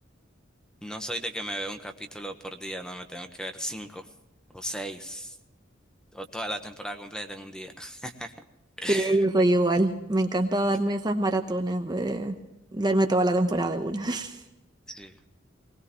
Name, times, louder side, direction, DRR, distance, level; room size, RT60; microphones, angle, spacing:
voice 1, 0.8-4.1 4.5-5.4 6.1-8.3 8.8-9.2 14.9-15.2, equal, 5° left, 6 dB, 1.2 m, -36 dB
voice 2, 8.9-12.4 12.7-14.4, right 1 dB, 20° right, 5 dB, 0.9 m, -24 dB
20.5 x 20.0 x 3.1 m, 0.97 s
head